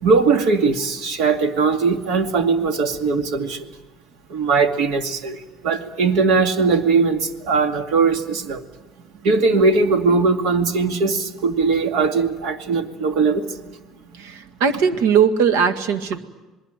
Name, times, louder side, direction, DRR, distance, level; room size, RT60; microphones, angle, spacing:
voice 1, 0.0-3.7 4.3-8.6 9.2-13.6, right 4 dB, 75° right, 6 dB, 2.4 m, -20 dB
voice 2, 14.2-16.2, right 7 dB, 90° right, 8 dB, 1.9 m, -19 dB
27.5 x 20.5 x 9.1 m, 1.1 s
cardioid pair, 120°, 0 cm